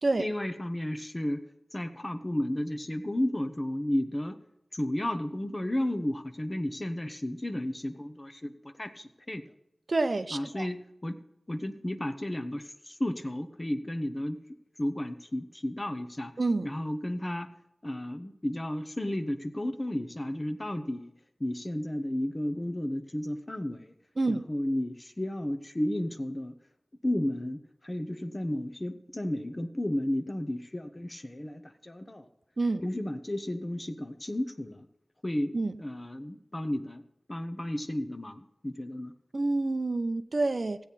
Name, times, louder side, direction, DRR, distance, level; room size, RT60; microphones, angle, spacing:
voice 1, 0.2-1.4 1.7-4.4 4.7-9.4 10.3-11.2 11.5-14.4 14.8-16.3 16.6-17.5 17.8-21.1 21.4-23.9 24.3-26.5 27.0-32.3 32.8-34.9 35.2-35.5 35.8-37.0 37.3-39.1, left 1 dB, 25° left, 9 dB, 0.9 m, -33 dB
voice 2, 9.9-10.7 16.4-16.7 24.2-24.4 32.6-32.8 35.5-35.7 39.3-40.8, right 2 dB, 50° right, 9 dB, 0.7 m, -28 dB
15.5 x 8.5 x 4.1 m, 0.84 s
wide cardioid pair, 75°, 0 cm